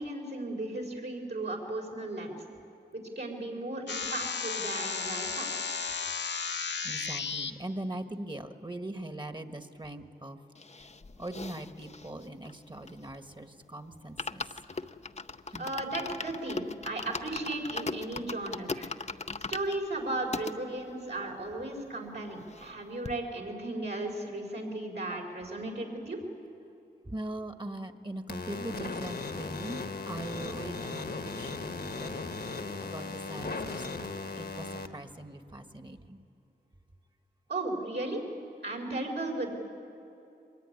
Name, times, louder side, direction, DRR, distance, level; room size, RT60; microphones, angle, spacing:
voice 1, 0.0-2.3 2.9-5.8 15.6-18.9 19.5-26.2 37.5-38.2 38.6-39.5, right 2 dB, 70° right, -1 dB, 4.7 m, -35 dB
sound 1, 3.9-7.5, left 5 dB, 80° left, 0.8 m, -34 dB
voice 2, 6.8-10.4 11.2-14.4 15.5-15.7 27.0-32.1 32.8-34.1 34.3-36.2, right 1 dB, 25° right, 8 dB, 1.6 m, -41 dB
sound 2, 10.5-13.3 13.7-13.8 14.0-20.5 21.1-21.2 21.4-21.5 21.8-22.8 23.0-23.2, left 4 dB, 40° left, 0.7 m, -39 dB
sound 3, 28.3-34.9, left 3 dB, 60° left, 1.4 m, -37 dB
24.0 x 21.0 x 9.8 m, 2.8 s
cardioid pair, 55°, 18 cm